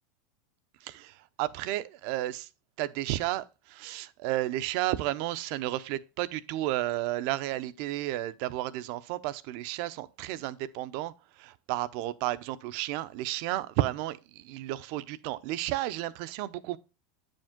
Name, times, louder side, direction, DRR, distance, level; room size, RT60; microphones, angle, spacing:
voice 1, 0.8-2.5 2.8-16.8, right 15 dB, 60° right, 0.6 m, -32 dB
8.8 x 5.2 x 3.6 m
hypercardioid pair, 105°, 0 cm